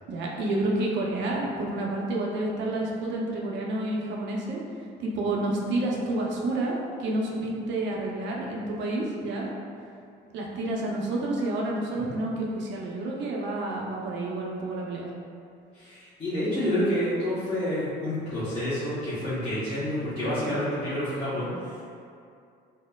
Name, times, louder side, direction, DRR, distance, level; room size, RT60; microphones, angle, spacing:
voice 1, 0.1-4.6 5.0-9.5 10.3-15.1, right 2 dB, 70° right, -2 dB, 0.6 m, -29 dB
voice 2, 15.7-21.8, equal, 30° left, -14 dB, 0.9 m, -29 dB
4.2 x 2.1 x 2.2 m, 2.4 s
cardioid pair, 110°, 19 cm